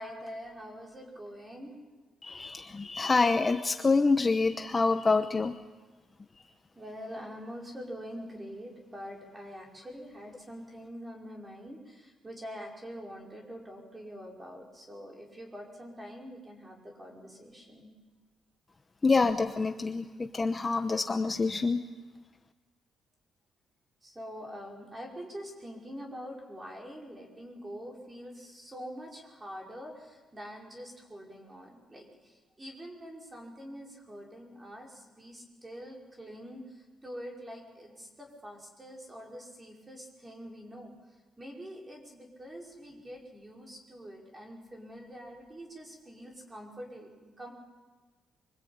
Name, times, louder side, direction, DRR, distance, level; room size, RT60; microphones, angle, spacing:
voice 1, 0.0-1.8 6.8-17.9 24.0-40.9 41.4-47.5, equal, 15° right, 0 dB, 5.5 m, -45 dB
voice 2, 2.2-5.5 19.0-21.8, left 3 dB, 20° left, 7 dB, 0.9 m, -26 dB
25.0 x 24.5 x 8.8 m, 1.3 s
cardioid pair, 150°, 0 cm